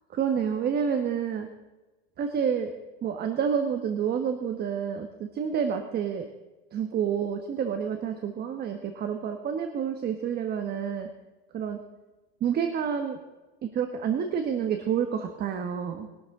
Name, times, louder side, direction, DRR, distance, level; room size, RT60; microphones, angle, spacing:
voice 1, 0.1-1.5 2.2-2.7 3.0-6.3 6.7-11.1 11.5-11.8 12.4-13.2 13.6-16.1, right 7 dB, 35° right, 6 dB, 1.4 m, -29 dB
21.0 x 12.0 x 3.8 m, 1.1 s
supercardioid pair, 130°, 29 cm